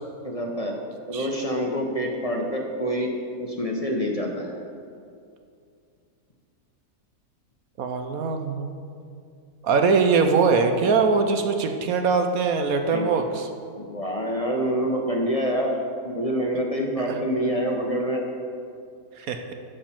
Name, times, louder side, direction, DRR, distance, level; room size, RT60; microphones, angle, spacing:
voice 1, 0.2-0.8 1.1-3.1 3.4-4.5 12.9-13.1 13.7-15.8 16.0-18.2, equal, 25° left, 0 dB, 1.0 m, -26 dB
voice 2, 7.8-8.7 9.6-13.5 17.1-17.2 19.2-19.5, right 4 dB, 70° right, 6 dB, 1.3 m, -22 dB
13.0 x 5.2 x 7.4 m, 2.4 s
omnidirectional pair, 1.6 m